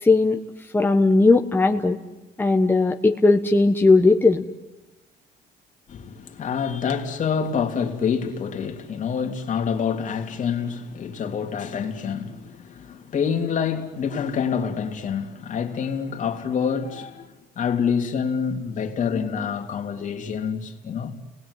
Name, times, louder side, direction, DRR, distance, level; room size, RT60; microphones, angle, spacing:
voice 1, 0.0-0.4 0.7-2.0 2.4-4.4, left 3 dB, 10° left, 1.3 m, -17 dB
voice 2, 5.9-17.3 17.6-21.2, left 6 dB, 50° left, 3.0 m, -27 dB
30.0 x 20.0 x 9.8 m
cardioid pair, 110°, 17 cm